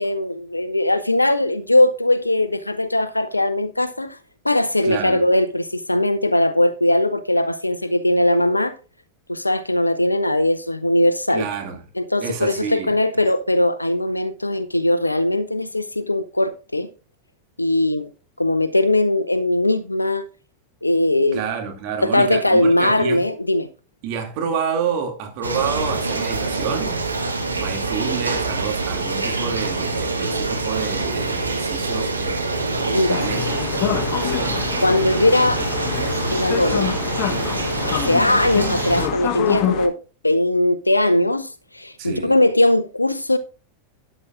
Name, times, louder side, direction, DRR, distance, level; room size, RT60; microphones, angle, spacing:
voice 1, 0.0-4.2 4.4-8.7 9.3-11.4 12.0-16.9 17.6-18.1 18.4-20.2 20.8-21.4 22.0-23.7 32.9-33.3 34.8-35.7 36.3-37.0 37.9-40.0 40.2-43.4, left 1 dB, 90° left, 0.5 m, -20 dB
voice 2, 4.8-5.3 11.3-11.8 12.2-13.0 21.3-23.2 24.0-27.0 27.6-34.6 42.0-42.3, right 6 dB, 50° right, 2.5 m, -29 dB
sound 1, 25.4-39.1, right 3 dB, 85° right, 1.6 m, -25 dB
sound 2, 33.1-39.9, left 9 dB, 40° left, 1.4 m, -26 dB
13.0 x 10.0 x 2.5 m
figure-of-eight pair, 90°, 0 cm